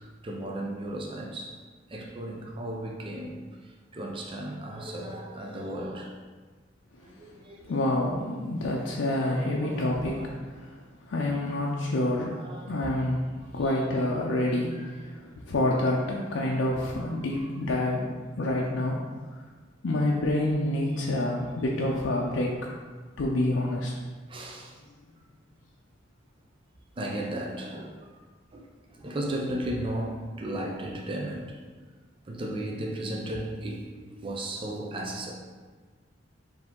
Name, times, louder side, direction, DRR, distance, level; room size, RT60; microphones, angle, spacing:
voice 1, 0.0-1.6 1.9-6.2 7.0-7.8 9.2-10.4 12.3-12.8 13.6-13.8 14.7-15.0 17.2-17.4 20.9-21.0 21.9-22.0 24.3-24.8 27.0-28.2 28.5-31.6 32.2-33.9 34.2-35.3, right 1 dB, 25° right, 0.4 m, -36 dB
voice 2, 7.7-10.6 11.1-12.4 12.7-13.3 13.5-19.0 19.8-22.6 23.2-23.9, left 1 dB, 80° left, 0.5 m, -27 dB
4.6 x 2.8 x 3.6 m
head